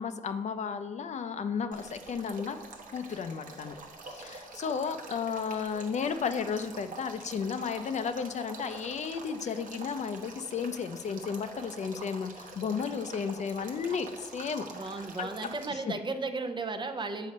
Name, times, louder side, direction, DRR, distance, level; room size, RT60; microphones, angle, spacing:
voice 1, 0.0-2.6 2.9-3.8 4.0-14.7 15.2-15.8, left 6 dB, 55° left, 9 dB, 0.5 m, -33 dB
Male speech man speaking / Stream / Trickle dribble, 1.7-15.7, right 3 dB, 65° right, 1.1 m, -46 dB
voice 2, 14.7-17.3, right 3 dB, 35° right, 7 dB, 0.6 m, -35 dB
6.7 x 4.1 x 5.3 m, 1.2 s
cardioid pair, 70°, 14 cm